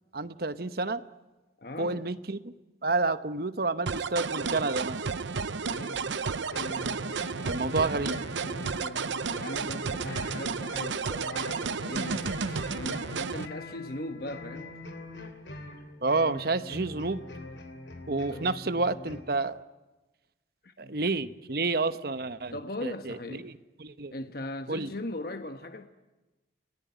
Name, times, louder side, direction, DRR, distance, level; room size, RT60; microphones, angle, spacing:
voice 1, 0.1-1.0 1.8-2.4 2.8-5.0 7.4-8.1 16.0-17.2 18.1-19.6 20.8-22.5 22.8-23.5 23.8-24.1 24.7-24.9, right 3 dB, 55° right, 1.0 m, -29 dB
voice 2, 1.6-2.1 5.7-6.1 7.1-7.7 8.4-14.8 18.3-18.5 20.6-21.0 22.5-23.5 24.1-25.9, left 1 dB, 55° left, 1.2 m, -40 dB
sound 1, 3.9-13.5, right 5 dB, 85° right, 0.8 m, -32 dB
sound 2, 6.5-19.2, left 2 dB, 70° left, 3.0 m, -43 dB
30.0 x 18.0 x 9.3 m
head